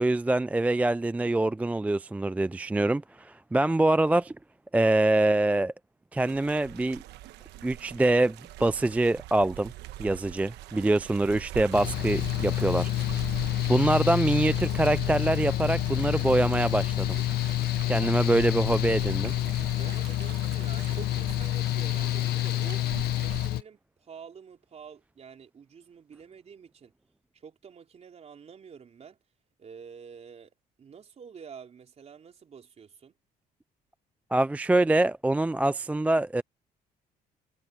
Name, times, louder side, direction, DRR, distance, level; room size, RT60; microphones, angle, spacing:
voice 1, 0.0-4.3 4.7-5.7 6.1-7.0 7.6-9.7 10.0-12.9 13.4-17.2 17.9-19.3 34.3-36.4, right 2 dB, 10° right, 0.3 m, -25 dB
sound 1, 6.2-23.5, right 15 dB, 85° right, 1.2 m, -42 dB
Mechanical fan, 11.7-23.6, left 15 dB, 65° left, 0.6 m, -28 dB
voice 2, 19.8-22.8 23.2-26.9 27.3-29.2 29.6-33.2, right 6 dB, 40° right, 4.1 m, -48 dB
cardioid pair, 110°, 17 cm